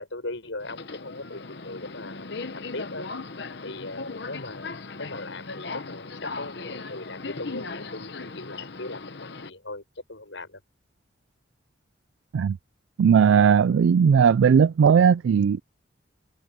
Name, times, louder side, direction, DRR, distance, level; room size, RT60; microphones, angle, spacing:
voice 1, 0.0-3.1 3.6-4.7 5.0-10.6, left 2 dB, 80° left, 6.9 m, -39 dB
Subway metro underground, 0.6-9.5, left 3 dB, 65° left, 1.0 m, -38 dB
voice 2, 13.0-15.6, right 7 dB, 85° right, 0.3 m, -18 dB
head